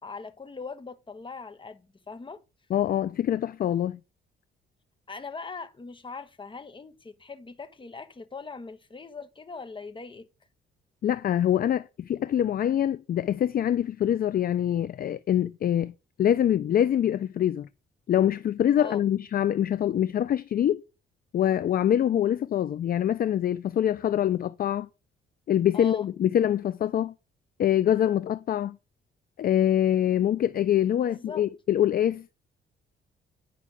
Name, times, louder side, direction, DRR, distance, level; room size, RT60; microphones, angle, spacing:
voice 1, 0.0-2.4 5.1-10.3 18.8-19.0 25.7-26.1 30.9-31.4, left 4 dB, 25° left, 1.2 m, -41 dB
voice 2, 2.7-4.0 11.0-15.9 16.2-17.7 18.1-20.8 21.3-24.9 25.5-27.1 27.6-28.8 29.4-32.3, left 10 dB, 50° left, 0.4 m, -24 dB
10.0 x 5.4 x 4.9 m
cardioid pair, 90°, 20 cm